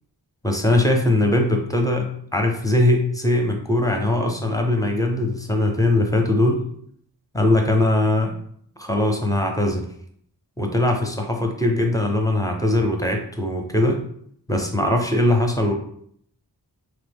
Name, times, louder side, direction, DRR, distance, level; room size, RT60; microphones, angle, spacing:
voice 1, 0.4-6.6 7.3-8.3 8.8-9.9 10.6-14.0 14.5-15.7, left 1 dB, 10° left, 2 dB, 0.5 m, -21 dB
3.1 x 2.0 x 3.4 m, 0.65 s
wide cardioid pair, 50°, 44 cm